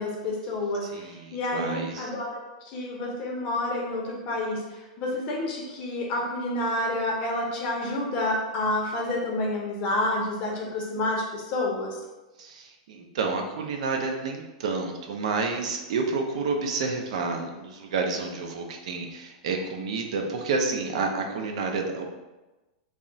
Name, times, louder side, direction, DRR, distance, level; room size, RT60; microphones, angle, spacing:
voice 1, 0.0-12.0, left 1 dB, 30° left, -2 dB, 0.6 m, -29 dB
voice 2, 0.8-2.1 12.4-22.1, right 4 dB, 65° right, 3 dB, 0.4 m, -30 dB
2.3 x 2.0 x 3.8 m, 1.1 s
supercardioid pair, 160°, 4 cm